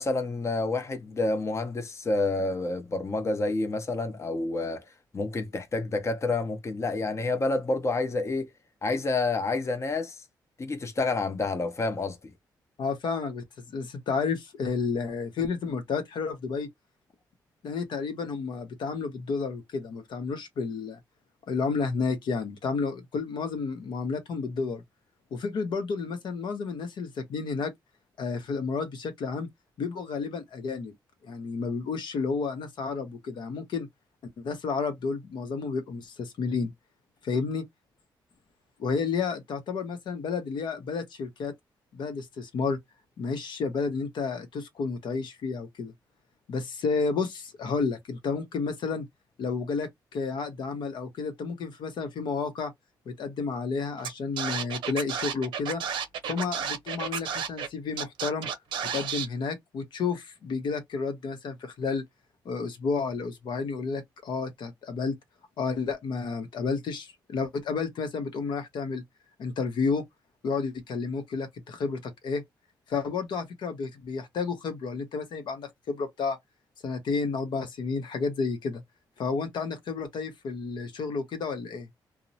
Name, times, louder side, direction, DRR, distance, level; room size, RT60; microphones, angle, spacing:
voice 1, 0.0-4.8 5.1-8.5 8.8-10.2 10.6-12.2, left 3 dB, 35° left, 0.7 m, -28 dB
voice 2, 12.8-16.7 17.6-21.0 21.5-24.8 25.3-27.7 28.2-29.5 29.8-30.9 31.2-33.9 34.4-36.7 37.2-37.6 38.8-41.5 41.9-42.8 43.2-45.9 46.5-49.1 49.4-52.7 53.1-55.8 56.3-58.5 58.9-62.0 62.4-65.1 65.6-69.0 69.4-70.0 70.4-72.4 72.9-76.4 76.8-78.8 79.2-81.9, left 4 dB, 70° left, 0.7 m, -31 dB
Scratching (performance technique), 54.0-54.1 54.4-57.7 58.0-59.3, right 7 dB, 85° right, 0.6 m, -32 dB
2.7 x 2.0 x 2.7 m
cardioid pair, 75°, 8 cm